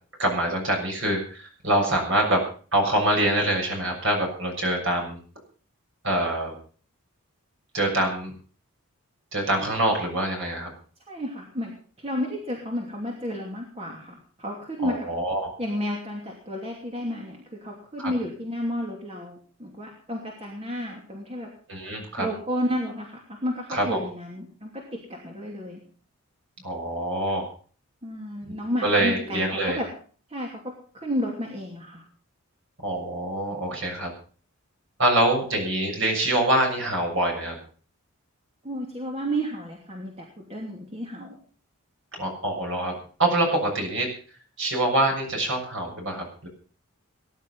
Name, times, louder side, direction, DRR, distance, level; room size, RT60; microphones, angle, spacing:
voice 1, 0.2-2.5 2.7-5.2 6.0-6.5 7.7-8.3 9.3-10.7 14.8-15.5 18.0-18.1 21.7-22.3 23.7-24.0 26.6-27.5 28.5-28.6 28.8-29.8 32.8-34.1 35.0-37.6 42.1-42.9 43.2-44.1 44.6-46.5, right 1 dB, 55° right, 2 dB, 7.0 m, -25 dB
voice 2, 11.1-11.7 12.0-15.1 15.6-21.5 22.2-25.8 28.0-29.9 30.3-32.0 38.6-41.4, equal, 25° right, -1 dB, 2.8 m, -32 dB
19.0 x 11.0 x 5.6 m, 0.43 s
head